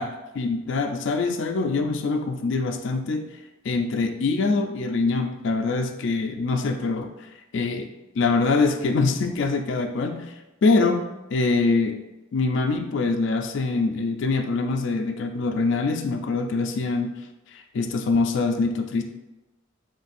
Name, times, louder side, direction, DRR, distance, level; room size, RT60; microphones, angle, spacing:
voice 1, 0.0-3.3 3.6-7.1 7.5-7.9 8.2-10.3 10.6-12.0 12.3-17.2 17.5-19.0, left 3 dB, 60° left, 4 dB, 0.3 m, -24 dB
4.1 x 3.8 x 2.5 m, 1.0 s
head